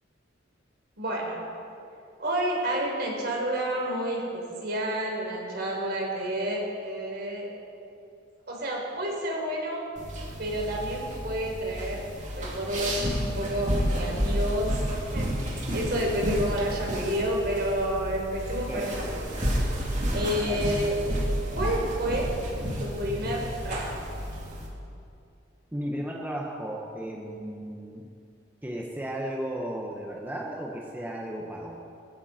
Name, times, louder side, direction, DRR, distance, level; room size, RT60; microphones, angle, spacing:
voice 1, 1.0-1.4 2.2-7.5 8.5-9.8 10.4-12.0 12.4-14.8 15.1-19.3 20.1-21.0 21.5-22.3 22.8-24.0, equal, 60° right, -1 dB, 4.1 m, -30 dB
sound 1, 10.0-24.7, equal, 40° right, 2.9 m, -31 dB
voice 2, 18.7-19.0 20.4-20.6 25.7-28.1 28.6-31.8, right 1 dB, 10° right, -2 dB, 1.2 m, -35 dB
20.0 x 15.5 x 4.4 m, 2.6 s
head